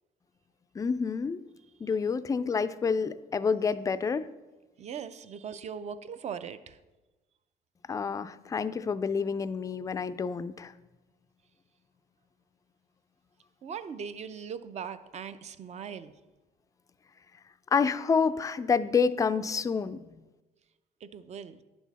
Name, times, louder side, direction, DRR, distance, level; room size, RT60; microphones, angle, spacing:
voice 1, 0.7-1.4 1.8-4.3 7.9-10.7 17.7-20.2, left 5 dB, 20° left, 13 dB, 0.3 m, -28 dB
voice 2, 4.8-6.8 13.6-16.1 21.0-21.6, right 7 dB, 40° right, 12 dB, 0.5 m, -40 dB
10.0 x 6.2 x 4.0 m, 1.1 s
cardioid pair, 110°, 17 cm